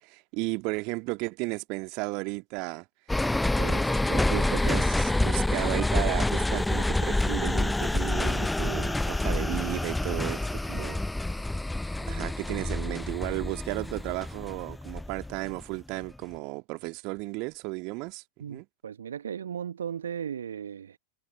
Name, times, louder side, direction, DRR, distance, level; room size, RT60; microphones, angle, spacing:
voice 1, 0.0-2.9 3.5-11.0 12.1-18.2 18.5-18.7, right 29 dB, 45° right, 1.9 m, -34 dB
sound 1, 3.1-15.6 16.0-16.1, left 2 dB, 5° left, 0.4 m, -27 dB
voice 2, 18.4-21.0, right 8 dB, 65° right, 1.2 m, -36 dB
figure-of-eight pair, 90°, 0 cm